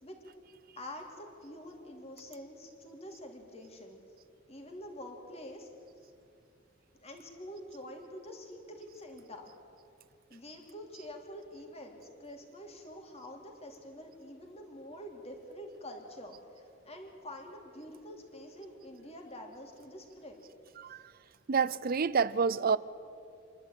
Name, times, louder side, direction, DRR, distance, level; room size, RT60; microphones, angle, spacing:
voice 1, 0.8-4.0 4.5-5.7 6.9-9.5 10.3-20.4, left 1 dB, 30° left, 2 dB, 3.0 m, -47 dB
voice 2, 21.5-22.8, right 5 dB, 50° right, 18 dB, 0.5 m, -28 dB
28.0 x 11.5 x 9.1 m, 2.5 s
head